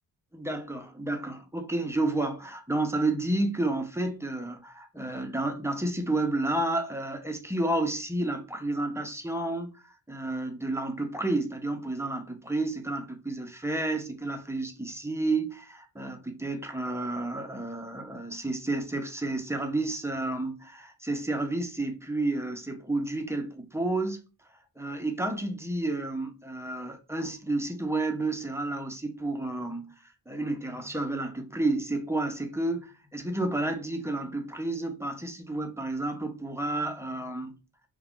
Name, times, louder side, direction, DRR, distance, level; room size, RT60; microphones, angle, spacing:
voice 1, 0.3-24.2 24.8-29.9 30.3-37.6, right 2 dB, 5° right, 0.5 m, -31 dB
2.3 x 2.3 x 3.5 m
cardioid pair, 70°, 44 cm